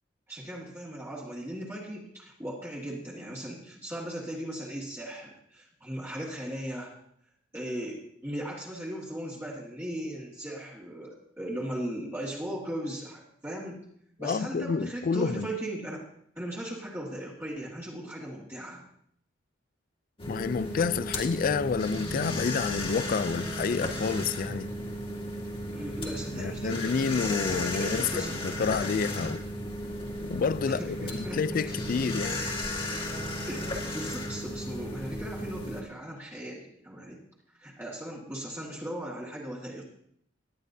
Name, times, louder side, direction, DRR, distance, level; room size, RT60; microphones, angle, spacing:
voice 1, 0.3-6.9 7.5-13.8 14.2-16.0 16.3-18.8 25.7-28.4 30.6-31.4 33.5-37.2 37.6-39.8, right 1 dB, 15° right, 1.7 m, -38 dB
voice 2, 14.2-15.5 20.3-24.7 26.3-29.4 30.2-32.4, left 5 dB, 50° left, 0.4 m, -29 dB
sound 1, 20.2-35.8, left 1 dB, 30° left, 1.8 m, -34 dB
18.0 x 10.5 x 2.7 m
head